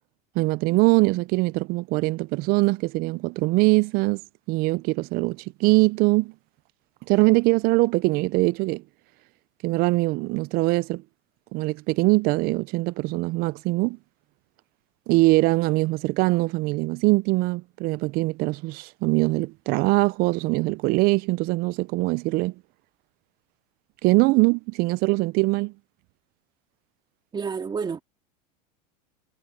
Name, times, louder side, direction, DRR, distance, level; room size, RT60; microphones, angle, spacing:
voice 1, 0.4-4.2 4.5-6.3 7.1-8.8 9.6-11.0 11.5-14.0 15.1-22.5 24.0-25.7, right 23 dB, 50° right, 0.4 m, -22 dB
voice 2, 27.3-28.0, right 5 dB, 20° right, 2.2 m, -29 dB
supercardioid pair, 125°, 20 cm